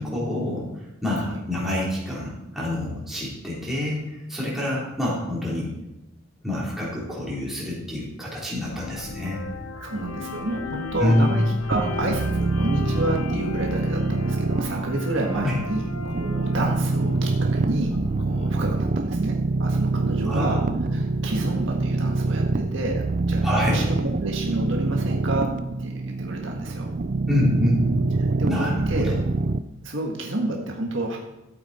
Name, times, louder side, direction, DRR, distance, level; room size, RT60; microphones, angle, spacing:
voice 1, 0.0-5.7 6.4-9.4 11.0-11.3 15.4-15.6 20.3-21.1 23.4-23.9 27.3-27.8 28.5-29.2, left 1 dB, ahead, -7 dB, 3.8 m, -27 dB
sound 1, 8.6-18.5, left 4 dB, 70° left, 0.6 m, -36 dB
voice 2, 9.8-20.6 20.9-23.4 23.7-23.9 24.2-25.5 25.8-26.9 28.2-29.1 29.8-31.2, right 2 dB, 60° right, 0 dB, 1.7 m, -30 dB
sound 2, 11.7-29.6, right 3 dB, 40° right, 0.4 m, -25 dB
13.5 x 8.3 x 4.4 m, 0.94 s
head